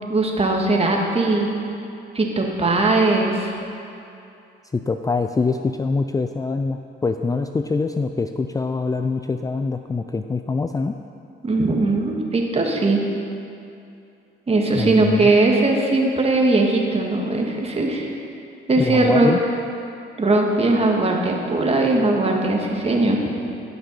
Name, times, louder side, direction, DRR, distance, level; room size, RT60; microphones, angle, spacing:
voice 1, 0.1-1.5 2.1-3.5 11.4-13.0 14.5-18.1 18.7-19.3 20.2-23.2, right 2 dB, 30° right, 0 dB, 1.8 m, -19 dB
voice 2, 4.7-11.0 14.7-15.3 18.8-19.4, left 4 dB, 15° left, 7 dB, 0.4 m, -24 dB
16.5 x 6.0 x 5.5 m, 2.6 s
cardioid pair, 90°, 20 cm